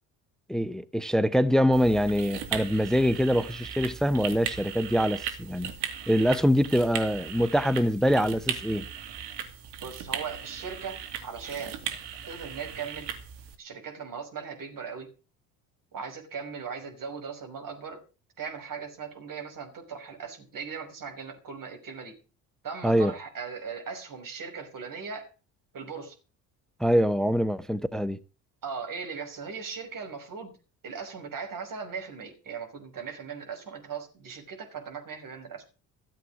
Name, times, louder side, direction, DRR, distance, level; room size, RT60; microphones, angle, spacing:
voice 1, 0.5-5.7 6.1-8.9 22.8-23.1 26.8-28.2, equal, ahead, 0.9 m, -24 dB
sound 1, 1.7-13.6, right 8 dB, 65° right, 2.8 m, -37 dB
voice 2, 9.8-11.8 12.3-13.1 13.6-15.1 15.9-18.0 18.4-22.1 22.6-25.3 25.7-26.1 28.6-30.5 30.8-35.6, right 6 dB, 45° right, 5.7 m, -38 dB
14.5 x 7.8 x 7.5 m
hypercardioid pair, 60°, 44 cm